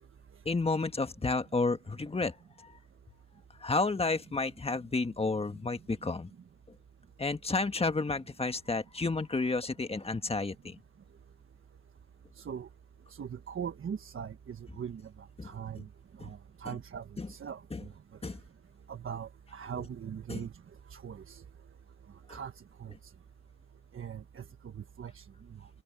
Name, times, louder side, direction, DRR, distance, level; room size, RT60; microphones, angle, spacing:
voice 1, 0.4-2.3 3.6-6.3 7.2-10.8 15.4-15.5 16.2-16.3 17.2-17.3 17.7-17.8 18.2-18.4 20.3-20.4, left 3 dB, 20° left, 1.7 m, -31 dB
voice 2, 12.4-12.7 13.2-15.0 15.4-15.8 16.2-17.6 18.9-20.5 20.9-21.4 22.3-22.5 22.8-22.9 23.9-24.4 24.7-25.2, right 8 dB, 45° right, 1.4 m, -40 dB
cardioid pair, 90°, 30 cm